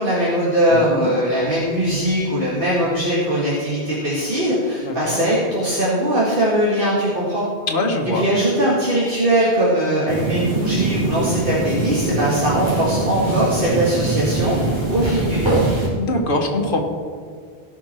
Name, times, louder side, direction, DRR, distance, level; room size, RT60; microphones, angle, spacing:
voice 1, 0.0-7.5 8.1-14.6 14.9-15.6, right 1 dB, 55° right, -6 dB, 2.1 m, -20 dB
voice 2, 0.7-1.1 4.8-5.2 7.7-8.3 16.0-16.8, left 2 dB, 55° left, 1 dB, 1.6 m, -23 dB
sound 1, 10.1-15.9, right 2 dB, 25° right, 3.3 m, -23 dB
17.5 x 6.0 x 4.4 m, 2.1 s
omnidirectional pair, 1.1 m